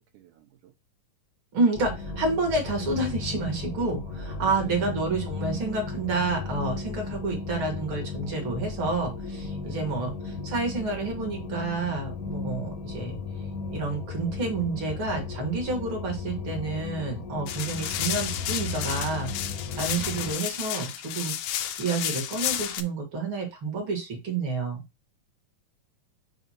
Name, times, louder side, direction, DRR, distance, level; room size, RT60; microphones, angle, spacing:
voice 1, 0.1-0.7 4.3-4.7 9.6-9.9 19.8-20.2, right 13 dB, 75° right, 4 dB, 2.4 m, -51 dB
voice 2, 1.5-13.2 13.7-19.3 19.8-24.8, right 3 dB, 45° right, 2 dB, 2.0 m, -29 dB
sound 1, 1.7-20.3, left 4 dB, 50° left, 1.0 m, -35 dB
sound 2, 17.5-22.8, left 11 dB, 80° left, 1.9 m, -32 dB
6.2 x 2.7 x 5.5 m, 0.24 s
omnidirectional pair, 3.7 m